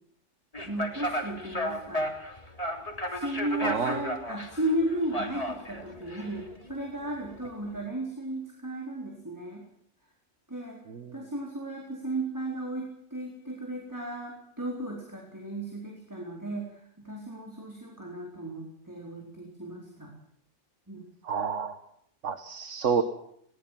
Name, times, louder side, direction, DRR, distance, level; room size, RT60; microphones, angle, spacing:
sound 1, 0.5-7.9, equal, 30° left, 3.4 m, -34 dB
voice 1, 0.6-2.1 3.1-9.6 10.5-10.8 11.1-20.1 20.9-21.1, right 1 dB, 15° right, -1 dB, 4.2 m, -35 dB
voice 2, 3.6-4.0 10.9-11.2 21.2-21.8 22.2-23.0, right 6 dB, 75° right, 10 dB, 1.6 m, -29 dB
21.5 x 19.0 x 7.6 m, 0.70 s
omnidirectional pair, 1.3 m